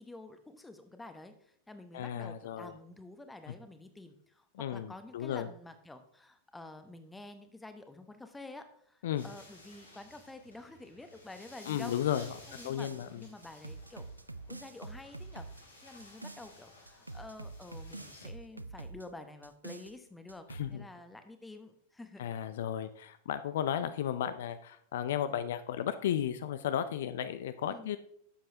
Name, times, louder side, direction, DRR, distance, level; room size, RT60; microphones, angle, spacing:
voice 1, 0.0-12.0 12.5-14.1 14.5-22.3 27.6-27.9, left 2 dB, 10° left, 8 dB, 0.9 m, -49 dB
voice 2, 1.9-2.7 4.6-5.5 9.0-9.3 11.7-12.3 12.6-13.2 20.6-20.8 22.2-28.0, left 10 dB, 60° left, 12 dB, 0.4 m, -34 dB
sound 1, 9.1-18.3, left 1 dB, 80° left, 2.7 m, -56 dB
sound 2, 12.0-13.1 13.4-16.5 16.9-19.1 19.4-19.9 20.3-20.7, right 2 dB, 85° right, 0.3 m, -46 dB
11.5 x 7.5 x 2.8 m, 0.66 s
figure-of-eight pair, 90°, 0 cm